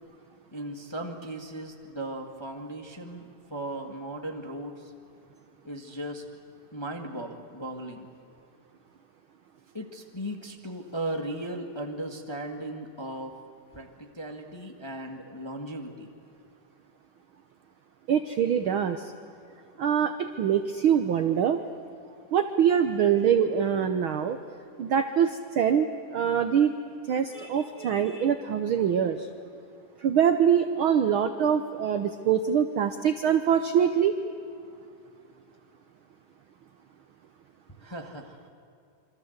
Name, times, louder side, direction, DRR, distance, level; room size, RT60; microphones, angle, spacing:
voice 1, 0.5-4.8 5.6-6.2 6.7-8.1 9.7-13.3 13.7-16.1 37.8-38.4, right 1 dB, 15° left, 3 dB, 0.9 m, -37 dB
voice 2, 18.1-19.0 19.8-20.1 20.4-21.6 22.3-24.4 24.8-26.8 27.1-29.3 30.0-34.1, right 8 dB, 85° right, 8 dB, 1.1 m, -24 dB
27.0 x 25.0 x 8.0 m, 2.4 s
omnidirectional pair, 3.6 m